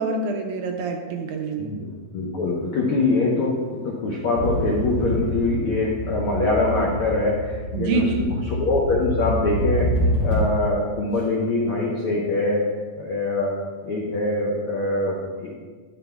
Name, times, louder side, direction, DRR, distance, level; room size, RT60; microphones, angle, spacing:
voice 1, 0.0-1.8 7.7-8.4, right 4 dB, 75° right, 3 dB, 1.9 m, -26 dB
voice 2, 2.1-8.3 8.6-9.9 10.2-12.6 13.0-13.5 13.8-15.6, left 2 dB, 75° left, -3 dB, 1.2 m, -23 dB
sound 1, 4.4-10.7, equal, 25° left, 1.9 m, -26 dB
10.0 x 9.5 x 2.3 m, 1.4 s
omnidirectional pair, 3.9 m